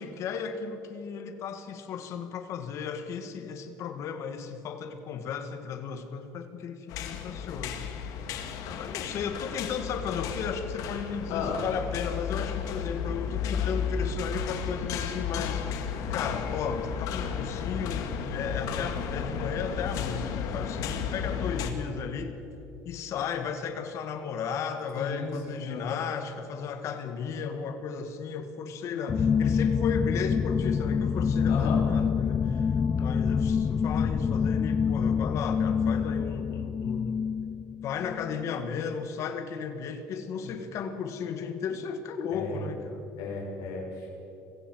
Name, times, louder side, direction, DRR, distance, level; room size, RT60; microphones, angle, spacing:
voice 1, 0.0-7.8 8.7-22.3 22.8-37.2 37.8-43.1, left 6 dB, 50° left, 7 dB, 2.0 m, -35 dB
sound 1, 6.9-21.7, left 7 dB, 70° left, 2.2 m, -33 dB
voice 2, 11.3-11.6 24.9-25.9 31.5-31.8 40.4-40.5 42.3-42.6 43.2-44.1, left 5 dB, 85° left, -2 dB, 5.9 m, -34 dB
sound 2, 29.1-38.6, left 6 dB, 25° left, 0.4 m, -27 dB
24.0 x 15.5 x 8.0 m, 2.8 s
cardioid pair, 145°, 6 cm